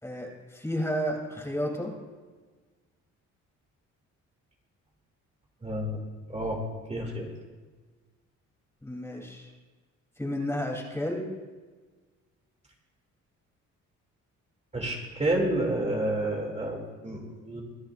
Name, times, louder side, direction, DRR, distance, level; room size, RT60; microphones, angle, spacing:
voice 1, 0.0-1.9 8.8-9.5 10.2-11.3, equal, 10° left, -1 dB, 3.4 m, -32 dB
voice 2, 5.6-6.0 6.3-6.6 6.9-7.3 14.7-16.8 17.0-17.6, right 1 dB, 20° right, -1 dB, 2.8 m, -29 dB
25.0 x 10.5 x 2.6 m, 1.4 s
cardioid pair, 90°, 30 cm